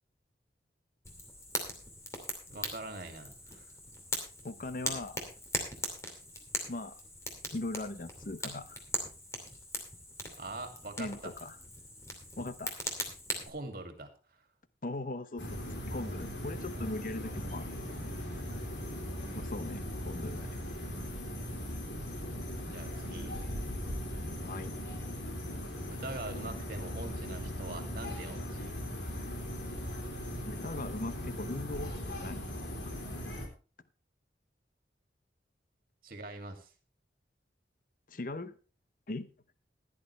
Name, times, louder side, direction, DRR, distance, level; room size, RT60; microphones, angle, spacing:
Fire, 1.0-13.5, left 1 dB, 15° left, 2.5 m, -40 dB
voice 1, 2.5-3.7 10.4-11.3 13.5-14.1 22.6-23.4 25.8-28.7 36.0-36.7, right 2 dB, 55° right, 6 dB, 2.4 m, -43 dB
voice 2, 4.4-5.3 6.7-7.0 7.5-8.8 11.0-11.6 12.4-12.8 14.8-15.6 15.9-17.7 19.3-20.6 24.4-24.8 30.5-32.4 38.1-38.5 39.1-39.3, left 2 dB, 50° left, 13 dB, 0.8 m, -39 dB
sound 1, 15.4-33.5, equal, 85° left, 3.5 m, -39 dB
16.0 x 11.0 x 3.2 m, 0.35 s
head